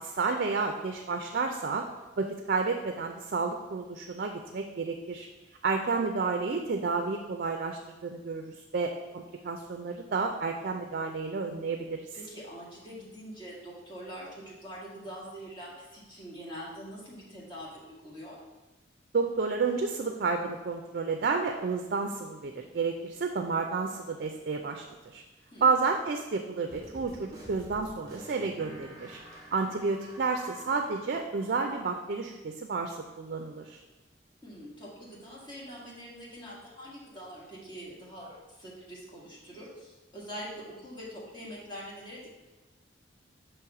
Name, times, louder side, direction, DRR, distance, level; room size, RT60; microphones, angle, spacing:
voice 1, 0.0-1.9 2.2-5.3 5.6-12.1 19.1-25.2 25.6-29.2 29.5-33.8, right 4 dB, 55° right, 5 dB, 0.4 m, -31 dB
voice 2, 12.1-18.4 25.5-25.7 34.4-42.3, equal, 25° left, -6 dB, 1.8 m, -44 dB
sound 1, 26.7-32.4, equal, 20° right, 1.5 m, -49 dB
6.3 x 3.1 x 5.8 m, 1.1 s
head